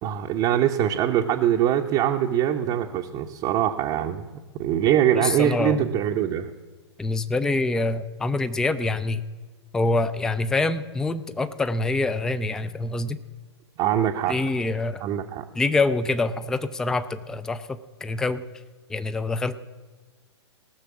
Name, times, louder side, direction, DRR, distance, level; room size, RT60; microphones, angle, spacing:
voice 1, 0.0-4.2 4.5-6.5 13.8-14.4 15.0-15.4, right 10 dB, 30° right, 2 dB, 0.8 m, -23 dB
voice 2, 5.2-5.9 7.0-9.2 9.7-13.2 14.3-15.0 15.5-17.6 18.0-18.4 18.9-19.6, left 3 dB, 5° left, 13 dB, 0.4 m, -25 dB
18.5 x 6.7 x 7.1 m, 1.3 s
figure-of-eight pair, 110°, 15 cm